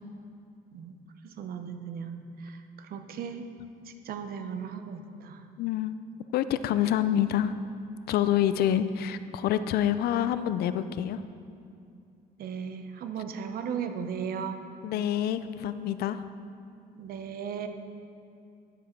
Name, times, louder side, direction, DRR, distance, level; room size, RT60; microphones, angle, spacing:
voice 1, 1.2-3.5 3.9-5.4 8.7-8.8 12.4-14.6 16.9-17.7, right 7 dB, 60° right, 7 dB, 0.8 m, -36 dB
voice 2, 5.6-6.0 6.3-7.5 8.1-11.2 14.8-16.2, left 10 dB, 70° left, 13 dB, 0.4 m, -27 dB
10.0 x 7.4 x 4.5 m, 2.5 s
cardioid pair, 110°, 17 cm